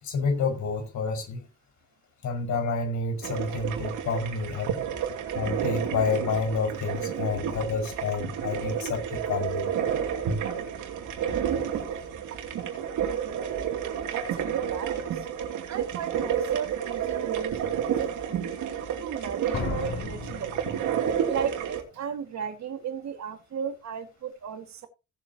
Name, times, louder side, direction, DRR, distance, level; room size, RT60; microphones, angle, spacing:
voice 1, 0.0-1.4 2.2-4.7 5.3-9.6, left 4 dB, 70° left, 5.7 m, -29 dB
sound 1, 3.2-21.8, right 8 dB, 85° right, 2.7 m, -30 dB
voice 2, 14.0-15.3 15.7-18.6 19.0-20.7 21.3-24.9, right 7 dB, 65° right, 2.0 m, -35 dB
Slam, 16.4-16.5 17.1-17.5 19.5-21.4 21.7-21.8, left 3 dB, 55° left, 5.7 m, -35 dB
17.5 x 7.7 x 2.9 m
cardioid pair, 90°, 30 cm